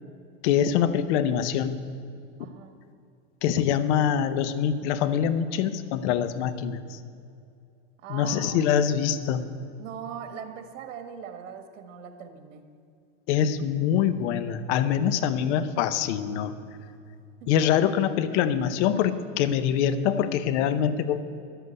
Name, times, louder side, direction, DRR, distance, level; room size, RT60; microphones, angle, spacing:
voice 1, 0.4-1.8 3.4-7.0 8.1-9.4 13.3-16.5 17.5-21.2, left 9 dB, 65° left, 12 dB, 1.0 m, -24 dB
voice 2, 2.4-2.9 8.0-8.6 9.8-12.7 15.0-15.3 17.4-17.5, right 8 dB, 75° right, 7 dB, 1.7 m, -41 dB
11.0 x 8.0 x 8.2 m, 2.5 s
supercardioid pair, 120°, 37 cm